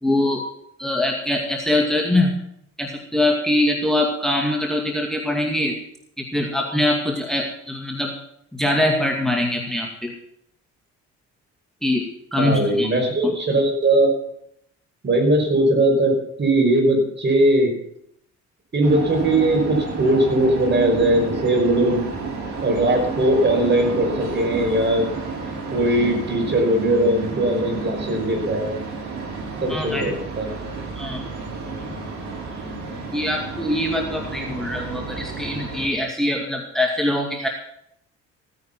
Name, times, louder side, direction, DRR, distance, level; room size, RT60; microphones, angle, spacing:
voice 1, 0.0-0.5 0.8-2.3 2.8-5.8 6.2-8.1 8.5-10.1 11.8-12.0 12.3-12.9 13.2-13.3 29.7-30.1 31.0-31.2 33.1-37.5, left 1 dB, ahead, 2 dB, 2.3 m, -23 dB
voice 2, 12.4-14.1 15.0-17.7 18.7-22.0 22.6-25.1 25.7-28.8 29.6-30.5, right 1 dB, 35° right, 3 dB, 5.7 m, -19 dB
sound 1, 18.8-35.9, right 4 dB, 65° right, 5.6 m, -31 dB
16.0 x 9.8 x 5.9 m, 0.73 s
cardioid pair, 90°, 30 cm